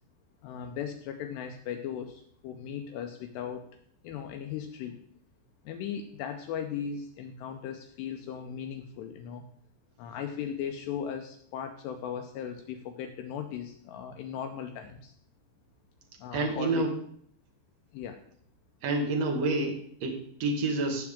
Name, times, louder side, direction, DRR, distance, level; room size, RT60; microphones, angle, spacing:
voice 1, 0.4-3.6 4.0-5.0 5.6-9.4 10.0-15.1 16.2-16.8 17.9-18.2, left 8 dB, 80° left, 5 dB, 2.6 m, -37 dB
voice 2, 16.3-16.9 18.8-21.1, right 2 dB, 65° right, 2 dB, 1.7 m, -29 dB
16.5 x 7.1 x 3.6 m, 0.62 s
omnidirectional pair, 5.5 m